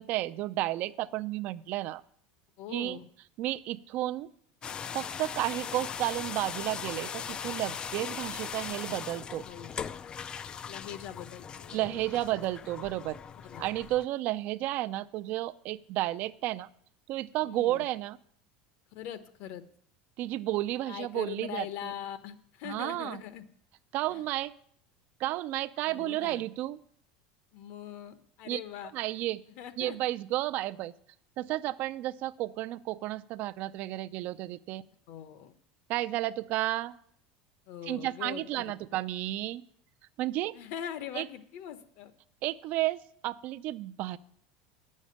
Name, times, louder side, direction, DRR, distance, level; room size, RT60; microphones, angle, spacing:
voice 1, 0.0-2.0 2.7-3.0 3.4-4.3 4.9-9.4 11.7-13.2 13.6-16.7 17.1-18.2 20.2-21.9 22.6-23.2 23.9-24.5 25.2-26.8 28.5-28.6 28.9-29.4 29.8-30.9 31.4-34.8 35.9-36.9 37.9-39.6 40.2-40.6 41.1-41.3 42.4-44.2, right 15 dB, 50° right, 13 dB, 0.4 m, -32 dB
voice 2, 2.6-3.1 9.4-9.8 10.6-12.0 13.4-13.7 17.4-17.9 18.9-19.6 20.9-23.5 24.1-24.3 25.9-26.5 27.5-28.9 29.6-30.0 35.1-35.5 37.7-38.7 40.5-42.1, left 10 dB, 55° left, 12 dB, 1.0 m, -42 dB
sound 1, 4.6-14.1, left 7 dB, 25° left, 0.3 m, -39 dB
9.2 x 6.5 x 8.6 m, 0.64 s
supercardioid pair, 145°, 4 cm